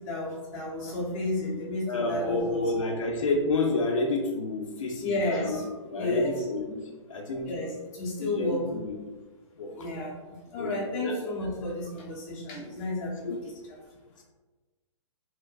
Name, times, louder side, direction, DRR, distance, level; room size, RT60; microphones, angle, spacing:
voice 1, 0.0-2.6 5.0-5.6 6.0-6.3 7.5-8.6 9.7-10.1 10.5-13.3, left 1 dB, 30° left, -6 dB, 0.8 m, -32 dB
voice 2, 1.9-5.6 5.9-6.8 7.1-7.5 8.2-8.9 9.6-9.9 10.6-11.1 13.2-13.4, left 2 dB, 85° left, 0 dB, 0.5 m, -29 dB
2.7 x 2.1 x 2.2 m, 1.3 s
hypercardioid pair, 150°, 16 cm